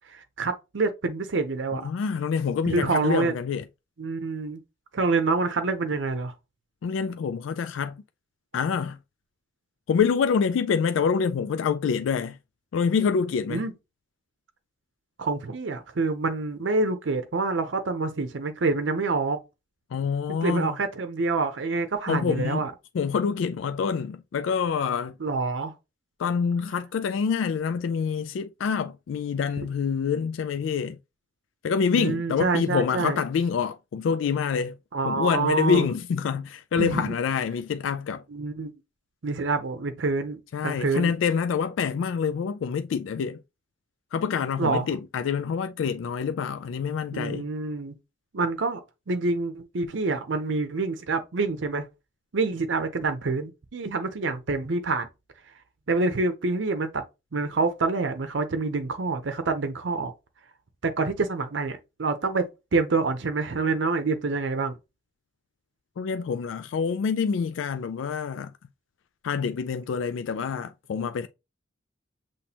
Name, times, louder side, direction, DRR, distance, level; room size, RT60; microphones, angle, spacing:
voice 1, 0.1-1.9 2.6-3.3 4.0-4.6 4.9-6.3 13.5-13.7 15.2-19.4 20.4-22.7 25.2-25.7 31.9-33.2 34.9-35.9 36.8-37.1 38.3-38.7 39.2-41.1 44.6-44.9 47.1-47.9 48.3-48.8 49.1-51.9 52.3-55.1 55.9-57.0 57.3-60.1 60.8-64.7, right 3 dB, 75° right, 0.6 m, -27 dB
voice 2, 1.8-3.6 6.8-8.0 8.5-9.0 9.9-12.4 12.7-13.6 19.9-20.7 22.1-22.6 22.9-25.1 26.2-31.0 31.6-34.7 35.0-38.2 40.5-43.4 44.1-47.5 66.0-68.5 69.2-71.3, left 6 dB, 85° left, 0.3 m, -26 dB
6.0 x 3.1 x 2.8 m
head